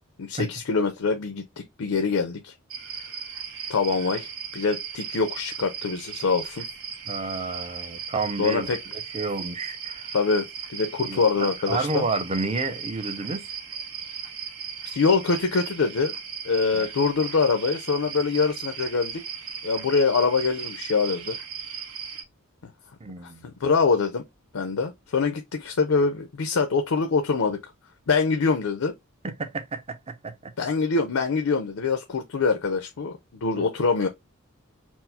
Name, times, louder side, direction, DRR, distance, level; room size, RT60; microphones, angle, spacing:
voice 1, 0.2-1.4 1.8-2.5 3.7-6.7 8.4-8.8 10.1-12.1 14.8-16.1 16.4-19.2 19.6-21.4 23.2-23.3 23.6-24.2 24.5-27.6 28.1-28.9 30.6-34.1, left 4 dB, 85° left, 0.6 m, -24 dB
sound 1, 2.7-22.2, right 7 dB, 80° right, 0.9 m, -37 dB
voice 2, 7.1-8.7 9.1-10.1 11.0-13.5 16.7-16.9 23.0-23.5 29.2-30.5 33.6-33.7, right 3 dB, 30° right, 0.5 m, -30 dB
4.5 x 2.0 x 4.0 m
head